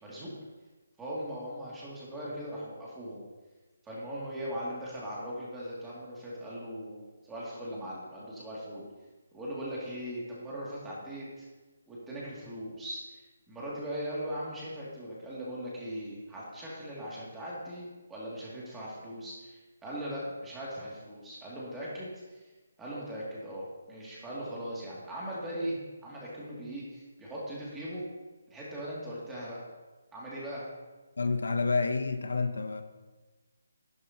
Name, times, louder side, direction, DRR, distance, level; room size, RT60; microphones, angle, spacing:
voice 1, 0.0-0.3 1.0-3.2 3.8-8.8 9.3-11.5 11.9-22.4 22.8-28.0 28.5-29.7 30.1-30.7, equal, 10° right, -7 dB, 2.5 m, -39 dB
voice 2, 31.2-32.8, left 4 dB, 80° left, 8 dB, 0.8 m, -29 dB
11.0 x 10.5 x 2.9 m, 1.2 s
hypercardioid pair, 165°, 0 cm